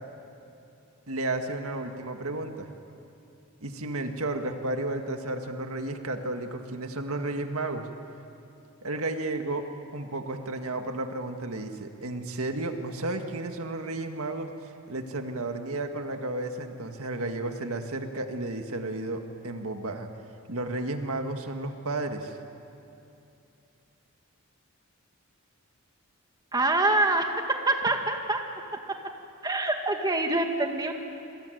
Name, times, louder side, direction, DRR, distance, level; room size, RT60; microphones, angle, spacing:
voice 1, 1.1-2.7 3.6-7.9 8.8-9.7 9.9-14.5 14.9-20.1 20.5-22.4, right 2 dB, 75° right, 5 dB, 1.9 m, -32 dB
voice 2, 26.5-28.4 29.4-30.9, right 2 dB, 20° right, 3 dB, 2.0 m, -25 dB
27.0 x 23.0 x 9.3 m, 2.7 s
head